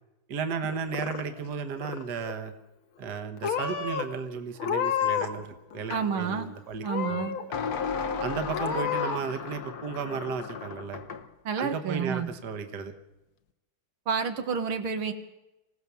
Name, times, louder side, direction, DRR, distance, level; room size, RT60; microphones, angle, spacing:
voice 1, 0.3-2.5 3.0-7.2 8.2-11.0 11.6-12.9, right 5 dB, 55° right, 8 dB, 1.8 m, -34 dB
Purr / Meow, 0.6-1.5 1.8-2.4 3.0-3.2 3.4-4.0 4.6-5.4 5.7-6.4 6.8-7.4 7.9-8.0 8.5-9.2, left 8 dB, 75° left, 2.1 m, -31 dB
sound 1, 5.9-6.1 7.5-11.3, left 6 dB, 55° left, 1.3 m, -35 dB
voice 2, 5.9-6.5 6.8-7.4 11.4-12.3 14.1-15.1, right 6 dB, 85° right, 6 dB, 2.3 m, -29 dB
26.0 x 16.5 x 6.9 m, 0.98 s
omnidirectional pair, 2.3 m